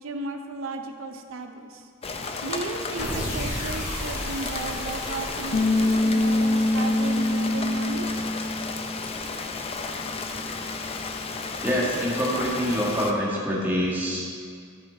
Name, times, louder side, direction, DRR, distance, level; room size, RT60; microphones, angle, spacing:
voice 1, 0.0-1.9 2.4-8.2, right 3 dB, 80° right, 5 dB, 0.6 m, -34 dB
Rain, 2.0-13.1, left 4 dB, 30° left, 0.5 m, -33 dB
sound 1, 3.0-9.3, left 1 dB, 50° left, 2.3 m, -36 dB
Bass guitar, 5.5-11.8, left 1 dB, 85° left, 0.8 m, -26 dB
voice 2, 11.6-14.3, equal, 10° right, -5 dB, 1.8 m, -25 dB
14.0 x 5.8 x 4.2 m, 2.2 s
head